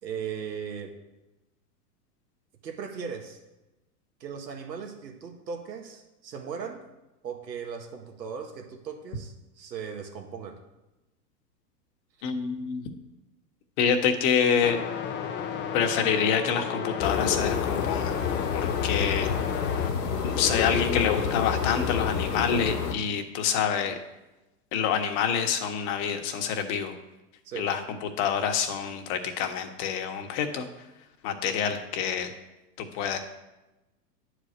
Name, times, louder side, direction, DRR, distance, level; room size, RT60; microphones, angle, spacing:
voice 1, 0.0-0.9 2.6-3.4 4.2-6.8 7.2-10.6 12.2-12.4 27.4-27.7, right 6 dB, 90° right, 3 dB, 1.9 m, -38 dB
voice 2, 12.2-12.8 13.8-14.8 15.7-18.2 18.5-19.5 20.2-24.0 24.7-27.0 27.5-30.7 31.2-32.3 32.8-33.2, left 7 dB, 45° left, 5 dB, 1.5 m, -27 dB
sound 1, 14.6-19.9, left 7 dB, 25° left, 0.7 m, -33 dB
sound 2, 17.0-22.9, left 7 dB, 70° left, 2.0 m, -28 dB
10.5 x 5.0 x 8.0 m, 1.0 s
hypercardioid pair, 125°, 49 cm